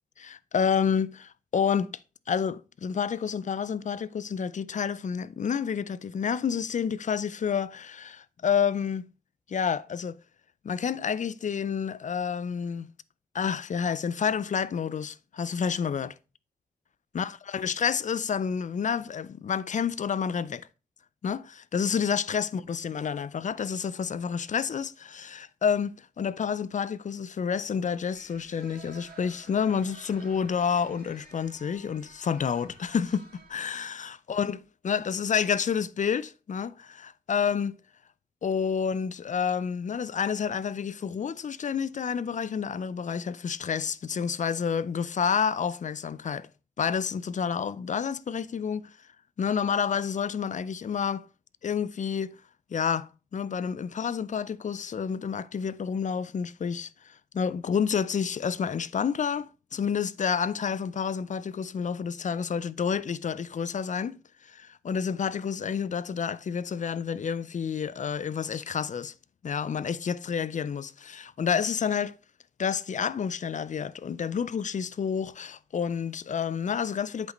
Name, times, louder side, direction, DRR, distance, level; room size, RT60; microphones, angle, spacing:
voice 1, 0.2-1.9 2.3-9.1 9.5-10.2 10.6-12.9 13.3-16.1 17.1-20.7 21.2-37.8 38.4-46.5 46.8-48.9 49.4-51.3 51.6-52.4 52.7-64.2 64.5-69.1 69.4-72.1 72.6-77.3, left 7 dB, 50° left, 0.5 m, -29 dB
sound 1, 28.1-33.5, right 4 dB, 75° right, 2.9 m, -52 dB
8.0 x 5.2 x 3.9 m
wide cardioid pair, 90°, 16 cm